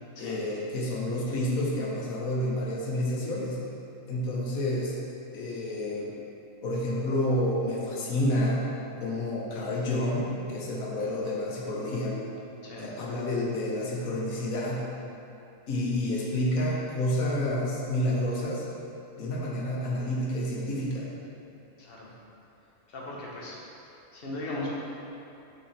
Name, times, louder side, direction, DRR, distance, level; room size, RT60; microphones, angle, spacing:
voice 1, 0.2-3.6 4.1-5.0 5.3-6.1 6.6-8.6 9.0-12.2 12.8-14.8 15.7-18.6 19.2-21.1, left 1 dB, 85° left, -3 dB, 1.4 m, -29 dB
voice 2, 12.6-12.9 21.8-22.1 22.9-23.6 24.1-24.7, left 2 dB, 45° left, -4 dB, 1.1 m, -37 dB
6.1 x 5.4 x 3.3 m, 2.8 s
omnidirectional pair, 1.4 m